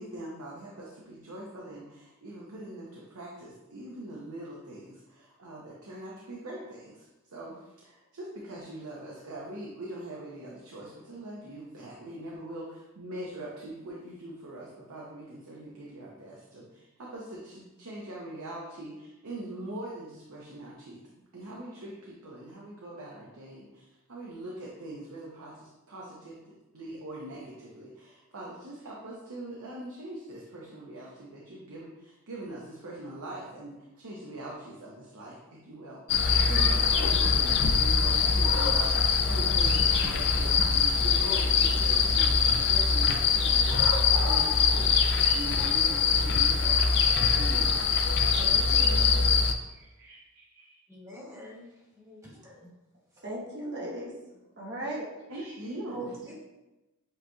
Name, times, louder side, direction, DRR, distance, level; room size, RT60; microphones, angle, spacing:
voice 1, 0.0-21.0 21.3-44.9 45.3-47.8 49.7-50.7 55.3-56.1, right 1 dB, 75° right, -4 dB, 0.8 m, -42 dB
sound 1, 36.1-49.5, left 5 dB, 55° left, 0.4 m, -23 dB
voice 2, 48.4-49.4 53.2-54.1 54.6-55.1, right 1 dB, 55° right, -4 dB, 1.2 m, -37 dB
voice 3, 50.9-51.7 51.9-52.7 53.8-53.9 55.9-56.3, right 1 dB, 15° right, -6 dB, 1.4 m, -44 dB
7.6 x 3.0 x 2.3 m, 1.0 s
head